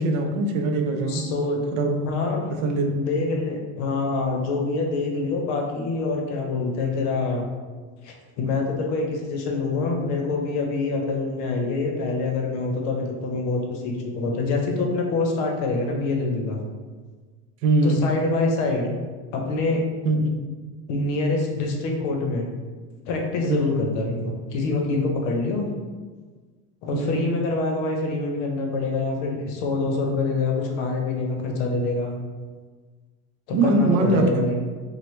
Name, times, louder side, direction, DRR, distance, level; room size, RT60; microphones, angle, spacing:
voice 1, 0.0-1.3 1.7-2.0 2.6-3.0 17.6-18.0 20.0-20.4 23.5-23.7 26.9-27.2 33.5-34.4, right 2 dB, 85° right, 3 dB, 0.6 m, -22 dB
voice 2, 1.0-1.6 2.0-2.5 2.9-7.5 8.0-16.6 17.8-19.0 19.3-19.8 20.9-22.5 23.1-25.7 26.8-32.2 33.5-34.6, left 3 dB, 70° left, 1 dB, 0.7 m, -25 dB
3.2 x 2.1 x 3.1 m, 1.4 s
cardioid pair, 160°, 38 cm